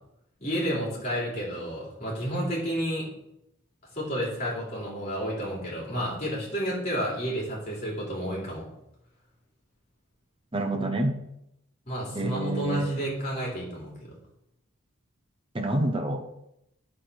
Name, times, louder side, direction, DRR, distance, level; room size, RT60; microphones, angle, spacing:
voice 1, 0.4-3.1 3.9-8.7 11.9-14.2, equal, 30° left, -4 dB, 3.5 m, -31 dB
voice 2, 10.5-11.1 12.1-12.9 15.5-16.2, right 1 dB, 25° right, 3 dB, 0.9 m, -27 dB
9.8 x 4.5 x 6.4 m, 0.81 s
head